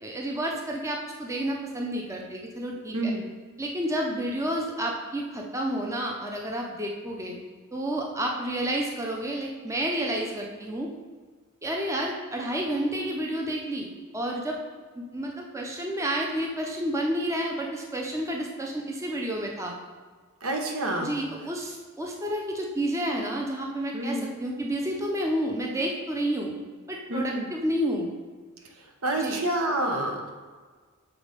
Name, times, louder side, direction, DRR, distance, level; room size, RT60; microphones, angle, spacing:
voice 1, 0.0-3.1 3.6-7.4 7.7-10.9 11.6-14.6 15.0-19.8 21.0-26.5 26.9-28.1 29.2-29.4, right 1 dB, 15° right, 0 dB, 0.6 m, -30 dB
voice 2, 20.4-21.2 23.9-24.3 27.1-27.5 29.0-30.3, right 1 dB, 70° right, 2 dB, 1.0 m, -28 dB
7.1 x 4.0 x 5.2 m, 1.5 s
head